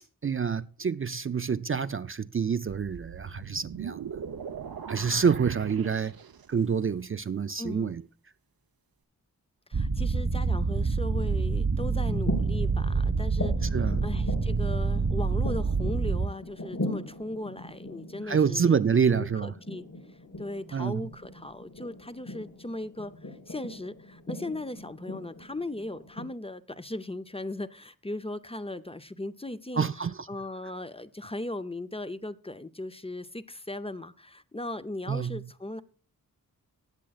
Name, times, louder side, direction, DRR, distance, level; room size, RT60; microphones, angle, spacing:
voice 1, 0.2-4.1 4.9-6.1 6.5-8.0 13.7-14.0 18.3-19.5 20.7-21.1 29.8-30.3 35.1-35.5, right 6 dB, 40° right, 0.4 m, -27 dB
sound 1, 2.7-6.7, right 7 dB, 90° right, 0.8 m, -40 dB
voice 2, 7.6-8.0 9.7-18.7 19.0-19.8 20.4-29.9 30.3-35.8, left 1 dB, 15° left, 0.6 m, -38 dB
sound 2, 9.7-16.3, right 4 dB, 55° right, 1.1 m, -27 dB
sound 3, 12.0-26.3, left 1 dB, 60° left, 3.2 m, -40 dB
18.5 x 7.5 x 2.4 m
wide cardioid pair, 85°, 35 cm